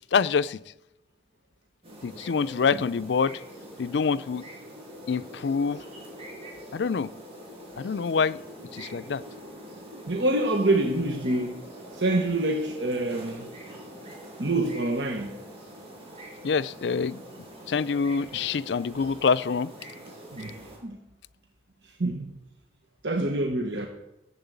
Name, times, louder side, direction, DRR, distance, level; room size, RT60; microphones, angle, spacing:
voice 1, 0.1-0.6 2.0-3.4 3.8-4.5 5.1-5.8 6.7-7.1 7.8-8.4 8.7-9.2 16.4-17.2 17.7-19.7, left 5 dB, 75° left, 0.4 m, -26 dB
sound 1, 1.8-20.8, equal, 30° right, 6.7 m, -44 dB
voice 2, 10.1-11.6 11.9-13.5 14.4-15.3 20.3-20.6 20.8-21.0 22.0-22.3 23.0-23.9, right 2 dB, 80° right, 1.3 m, -26 dB
14.5 x 7.8 x 8.1 m
head